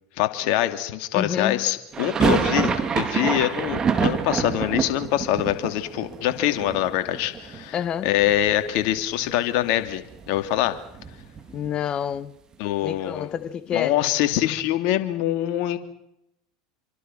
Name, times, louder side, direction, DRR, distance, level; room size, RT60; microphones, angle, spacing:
voice 1, 0.2-10.8 12.6-13.3 13.7-15.8, left 13 dB, 55° left, 2.9 m, -24 dB
voice 2, 1.1-1.7 7.7-8.1 11.5-12.3 12.8-14.0, left 9 dB, 35° left, 1.3 m, -28 dB
sound 1, 1.9-7.9 8.1-9.0 9.3-9.4 9.6-11.8, right 6 dB, 30° right, 3.2 m, -27 dB
27.5 x 24.5 x 6.1 m
hypercardioid pair, 80°, 3 cm